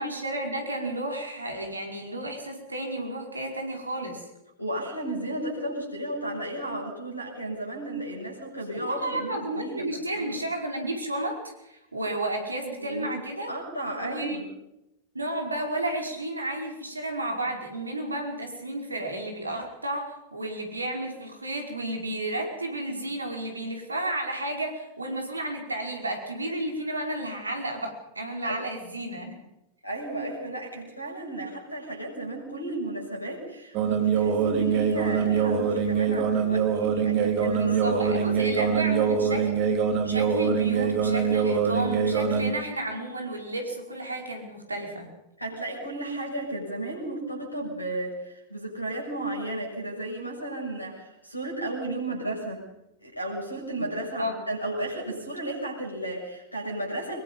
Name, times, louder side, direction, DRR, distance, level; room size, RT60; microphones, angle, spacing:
voice 1, 0.0-4.3 8.8-13.5 13.9-14.4 15.1-29.3 37.5-39.7 40.0-45.1 54.2-54.3, right 1 dB, 80° right, 2 dB, 5.2 m, -32 dB
voice 2, 4.6-10.4 12.8-13.2 13.5-14.5 28.4-28.6 29.8-38.8 45.4-52.7 53.0-57.2, right 1 dB, 85° left, 0 dB, 6.6 m, -34 dB
sound 1, 33.7-42.5, right 6 dB, 40° right, 3.0 m, -24 dB
25.0 x 22.0 x 5.6 m, 0.89 s
figure-of-eight pair, 90°, 0 cm